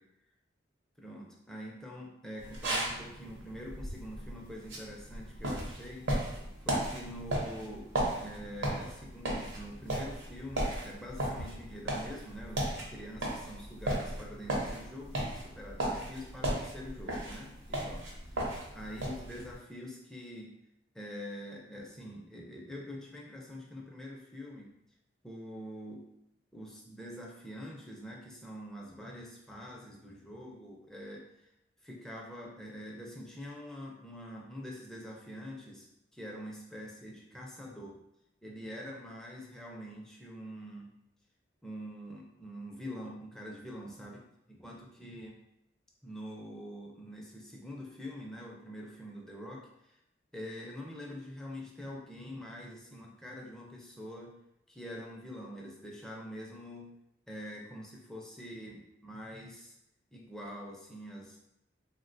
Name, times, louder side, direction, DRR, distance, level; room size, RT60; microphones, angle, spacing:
voice 1, 1.0-7.9 8.2-20.5 20.9-24.7 25.2-26.1 26.5-31.5 31.8-35.9 36.1-38.0 38.4-40.9 41.6-45.4 46.0-50.0 50.3-54.4 54.7-57.0 57.3-59.8 60.1-61.4, equal, 5° left, -3 dB, 0.4 m, -45 dB
sound 1, 2.4-19.6, right 1 dB, 75° right, 0.8 m, -36 dB
3.4 x 2.1 x 2.5 m, 0.82 s
head